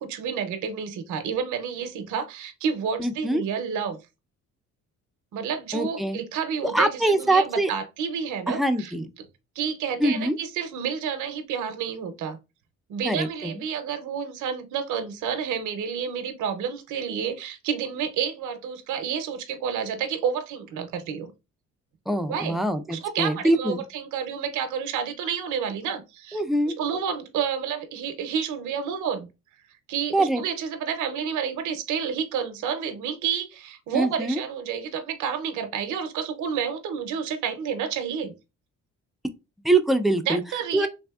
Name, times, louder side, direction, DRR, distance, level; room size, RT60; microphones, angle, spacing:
voice 1, 0.0-4.0 5.3-8.9 9.6-12.4 12.9-21.3 22.3-22.6 22.9-26.4 26.8-29.3 29.9-38.3 40.3-40.9, right 7 dB, 80° right, 0.6 m, -30 dB
voice 2, 3.0-3.4 5.7-6.2 6.6-7.7 8.5-9.1 10.0-10.4 13.1-13.6 22.1-23.8 26.3-26.7 30.1-30.4 33.9-34.4 39.6-40.4 40.7-40.9, right 1 dB, ahead, 0.4 m, -23 dB
3.5 x 2.6 x 2.3 m
cardioid pair, 90°, 30 cm